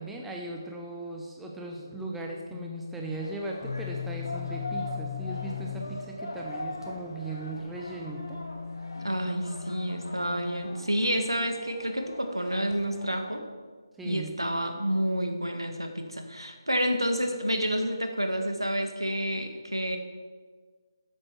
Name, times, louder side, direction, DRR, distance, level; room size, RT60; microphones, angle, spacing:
voice 1, 0.0-8.4 14.0-14.3, right 2 dB, 5° right, 0 dB, 0.9 m, -38 dB
sound 1, 1.8-2.1 2.5-3.2 3.6-6.1 6.7-10.7 12.5-12.7, left 7 dB, 35° left, 1.7 m, -39 dB
sound 2, 3.1-13.4, left 1 dB, 70° left, 2.3 m, -41 dB
voice 2, 9.0-13.4 14.0-20.0, equal, 90° right, 5 dB, 1.6 m, -29 dB
12.5 x 8.8 x 4.6 m, 1.5 s
figure-of-eight pair, 150°, 2 cm